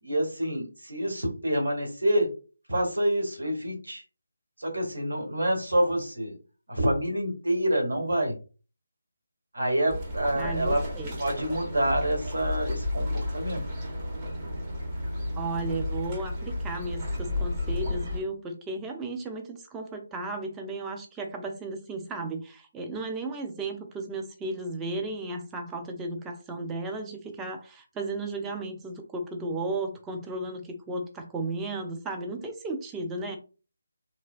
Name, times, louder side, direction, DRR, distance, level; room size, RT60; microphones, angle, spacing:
voice 1, 0.0-2.3 2.7-4.0 4.6-6.4 6.7-8.4 9.5-10.8 11.2-13.6, right 1 dB, 75° right, 1 dB, 1.3 m, -27 dB
sound 1, 9.9-18.2, left 1 dB, 25° right, 0.8 m, -32 dB
voice 2, 10.3-11.2 15.3-33.4, right 2 dB, 10° right, 3 dB, 0.4 m, -34 dB
3.1 x 2.1 x 2.4 m, 0.34 s
figure-of-eight pair, 155°, 0 cm